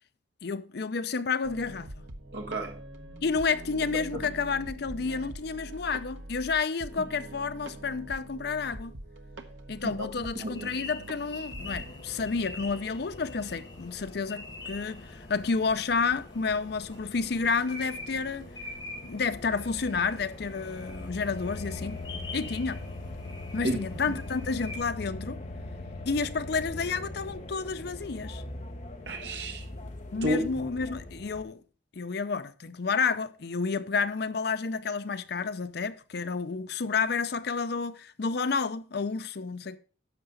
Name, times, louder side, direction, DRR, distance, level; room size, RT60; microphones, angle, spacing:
voice 1, 0.4-2.0 3.2-8.9 9.7-18.5 19.0-22.0 22.3-22.8 23.5-25.4 26.1-28.4 30.1-31.6 31.9-39.8, left 4 dB, 60° left, 0.5 m, -30 dB
sound 1, 1.4-11.9, right 1 dB, 80° right, 1.0 m, -44 dB
voice 2, 2.3-2.8 9.8-9.9 10.4-10.7 23.6-23.8 29.1-29.6 30.2-30.4, equal, 65° right, 1.6 m, -31 dB
sound 2, 10.5-24.8, left 2 dB, 20° left, 2.6 m, -46 dB
sound 3, 11.6-31.4, left 2 dB, 40° left, 1.1 m, -42 dB
10.5 x 6.6 x 3.9 m
head